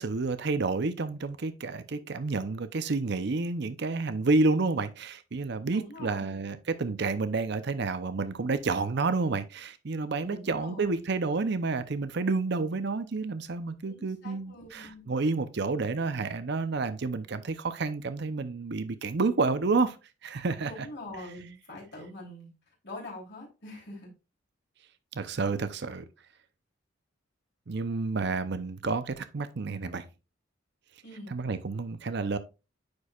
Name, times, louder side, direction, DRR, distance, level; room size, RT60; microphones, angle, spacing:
voice 1, 0.0-20.0 20.2-20.9 25.1-26.0 27.7-30.0 31.3-32.4, right 3 dB, 60° right, 0.6 m, -30 dB
voice 2, 5.7-6.4 10.2-11.0 13.8-15.1 20.6-22.5 22.8-24.1 31.0-31.3, left 1 dB, 60° left, 3.2 m, -44 dB
9.5 x 4.6 x 2.4 m
head